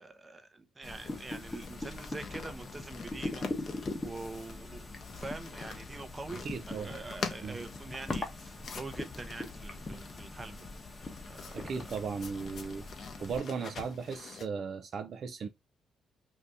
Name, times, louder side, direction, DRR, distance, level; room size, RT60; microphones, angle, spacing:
voice 1, 0.0-10.7 11.3-11.9, right 3 dB, 25° right, 0.7 m, -45 dB
sound 1, 0.8-14.5, left 5 dB, 55° left, 0.7 m, -46 dB
sound 2, 0.8-13.4, left 2 dB, 25° left, 0.8 m, -42 dB
voice 2, 6.4-6.9 7.4-7.6 11.5-12.9 13.2-15.5, right 5 dB, 55° right, 0.4 m, -36 dB
2.7 x 2.6 x 3.3 m
cardioid pair, 90°, 0 cm